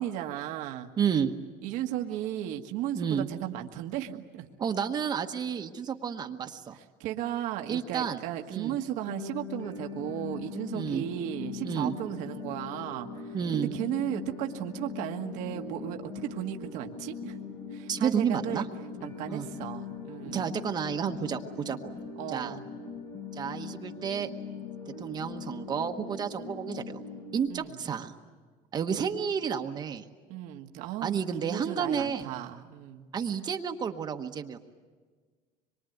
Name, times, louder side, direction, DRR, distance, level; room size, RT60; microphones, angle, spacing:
voice 1, 0.0-0.9 1.6-4.5 6.7-17.4 17.7-18.7 19.0-20.5 22.2-22.7 27.5-27.8 30.3-33.0, right 12 dB, 75° right, 4 dB, 1.6 m, -35 dB
voice 2, 1.0-1.3 3.0-3.3 4.6-6.8 7.7-8.2 8.5-8.8 10.7-11.0 11.6-11.9 13.3-13.7 17.9-18.6 19.3-19.5 20.3-22.0 22.3-22.6 23.3-24.3 25.0-27.0 27.3-28.1 28.7-30.1 31.0-32.3 33.1-34.6, right 7 dB, 30° right, 5 dB, 1.2 m, -31 dB
sound 1, 9.0-27.5, left 5 dB, 75° left, 6.6 m, -41 dB
25.5 x 23.5 x 9.3 m, 1.5 s
cardioid pair, 145°, 13 cm